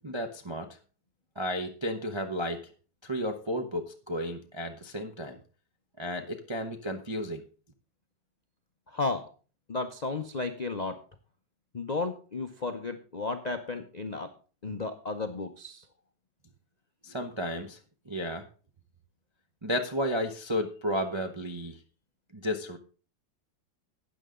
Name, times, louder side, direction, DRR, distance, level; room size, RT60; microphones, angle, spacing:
voice 1, 0.0-0.7 1.4-2.7 3.0-5.4 6.0-7.4 17.0-17.8 18.1-18.5 19.6-21.8 22.3-22.8, equal, 50° right, 4 dB, 0.3 m, -33 dB
voice 2, 8.9-9.2 9.7-11.0 11.7-14.3 14.6-15.8, left 3 dB, 80° left, 7 dB, 0.3 m, -33 dB
12.5 x 9.0 x 3.8 m, 0.37 s
omnidirectional pair, 2.1 m